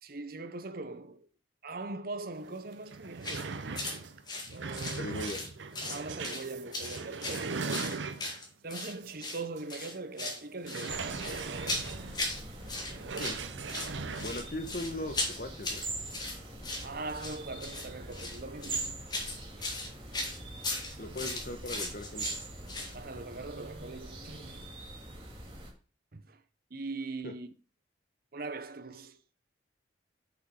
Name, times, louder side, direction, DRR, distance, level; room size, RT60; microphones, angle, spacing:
voice 1, 0.0-1.3 1.6-4.1 4.5-5.2 5.8-8.1 8.6-11.8 16.8-19.0 22.9-24.7 26.1-26.4 26.7-27.5 28.3-29.2, right 3 dB, 55° right, 0.9 m, -41 dB
sound 1, 2.4-2.5 2.8-8.5 9.0-9.2 9.6-9.7 10.6-14.4, right 4 dB, 85° right, 0.8 m, -39 dB
sound 2, 3.2-3.4 3.7-4.0 4.3-5.5 5.7-6.4 6.7-8.9 9.2-9.4 9.7-10.4 10.7-12.4 12.7-13.4 13.7-22.9, left 2 dB, 25° left, 2.0 m, -37 dB
voice 2, 5.0-5.4 13.2-13.4 14.2-15.8 21.0-22.2 27.2-27.3, left 1 dB, 50° left, 1.4 m, -38 dB
sound 3, 10.9-25.7, right 2 dB, 30° right, 2.0 m, -43 dB
6.9 x 6.0 x 4.9 m
head